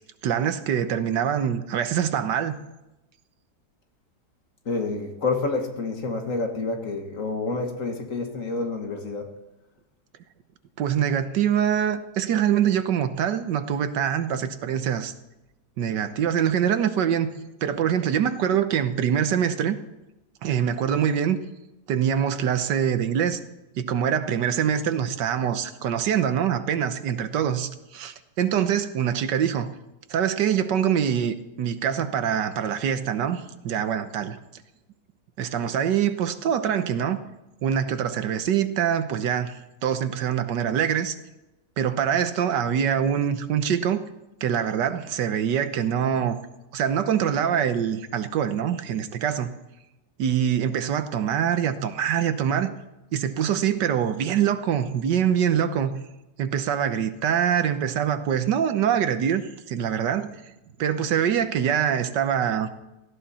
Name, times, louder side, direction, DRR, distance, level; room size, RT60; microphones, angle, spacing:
voice 1, 0.2-2.6 10.8-15.1 15.8-17.3 17.6-19.8 20.4-21.4 21.9-23.4 23.7-29.7 30.1-34.4 35.4-37.2 37.6-41.2 41.8-44.0 44.4-46.4 46.7-49.5 50.2-52.7 53.1-56.0 56.4-60.3 60.8-62.7, right 8 dB, 85° right, 1.6 m, -24 dB
voice 2, 4.7-9.3, left 3 dB, 50° left, 1.9 m, -28 dB
17.5 x 15.0 x 4.2 m
omnidirectional pair, 1.8 m